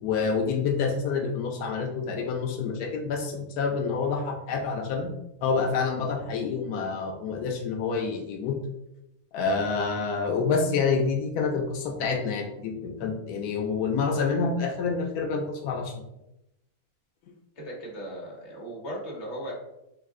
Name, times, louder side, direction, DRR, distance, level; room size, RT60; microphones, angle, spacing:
voice 1, 0.0-5.1 5.4-8.6 9.3-15.9, left 5 dB, 90° left, 2 dB, 1.1 m, -27 dB
voice 2, 17.6-19.5, equal, 50° left, -3 dB, 1.4 m, -37 dB
4.1 x 2.5 x 3.6 m, 0.89 s
omnidirectional pair, 1.6 m